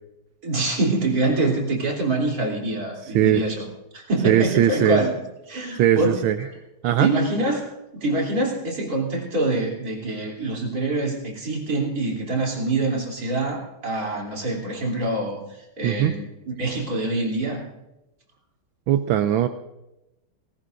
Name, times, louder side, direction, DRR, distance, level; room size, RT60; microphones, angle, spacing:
voice 1, 0.4-3.6 3.9-5.1 5.5-6.5 7.0-17.7, right 2 dB, 45° right, -1 dB, 3.8 m, -25 dB
voice 2, 4.2-5.0 5.8-6.4 6.8-7.1 15.8-16.1 18.9-19.5, right 11 dB, 75° right, 9 dB, 1.4 m, -19 dB
19.0 x 18.0 x 2.6 m, 0.91 s
omnidirectional pair, 2.3 m